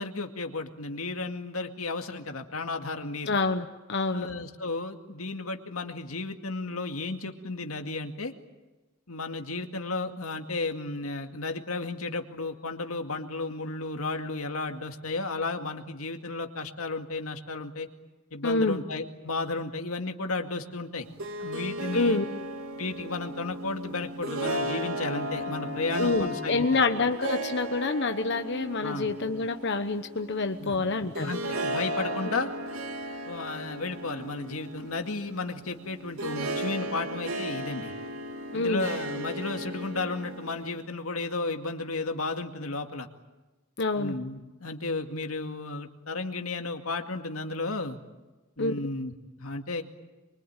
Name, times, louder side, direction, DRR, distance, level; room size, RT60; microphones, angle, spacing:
voice 1, 0.0-3.4 4.1-8.3 9.1-17.9 18.3-21.0 21.4-22.2 22.8-26.8 28.8-29.1 30.6-30.8 31.2-32.5 33.3-37.9 38.5-43.1 43.9-48.0 48.6-49.1 49.4-49.8, left 3 dB, 90° left, 5 dB, 2.2 m, -33 dB
voice 2, 3.3-4.3 18.4-18.8 21.9-22.2 26.0-31.3 38.5-38.9 43.8-44.1 48.6-48.7, left 3 dB, 55° left, 6 dB, 1.1 m, -27 dB
Harp, 21.0-40.8, right 1 dB, 85° right, 2.7 m, -35 dB
24.5 x 24.0 x 9.1 m, 1.1 s
head